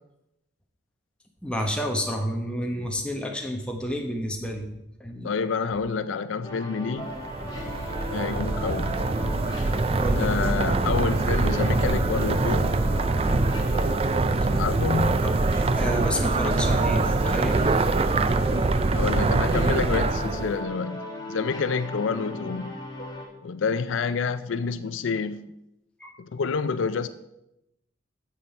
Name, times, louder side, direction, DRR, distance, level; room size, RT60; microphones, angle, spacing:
voice 1, 1.4-4.7 5.0-5.3 10.0-10.3 15.2-15.4 15.8-17.8 22.4-22.5 26.0-26.2, equal, 5° left, 1.0 m, -30 dB
voice 2, 5.2-7.1 8.1-9.0 9.6-9.7 10.1-12.7 14.6-15.3 18.9-21.0 21.3-22.8 23.4-25.5 26.2-27.1, left 5 dB, 80° left, 0.4 m, -28 dB
sound 1, 6.4-23.2, left 1 dB, 20° left, 1.7 m, -37 dB
sound 2, 7.1-20.6, right 3 dB, 30° right, 0.4 m, -24 dB
9.4 x 7.5 x 4.4 m
head